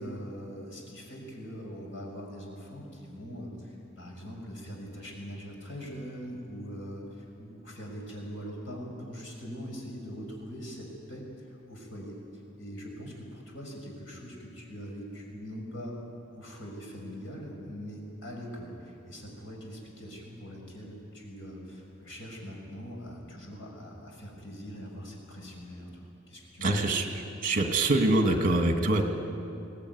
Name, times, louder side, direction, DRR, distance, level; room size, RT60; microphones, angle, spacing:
voice 1, 0.0-11.2 11.5-12.2 12.6-16.0 16.4-25.9 26.3-27.0, equal, 75° left, 0 dB, 6.3 m, -42 dB
voice 2, 26.6-27.1 27.4-29.0, right 2 dB, 45° right, 4 dB, 2.2 m, -24 dB
23.0 x 17.5 x 9.6 m, 2.6 s
head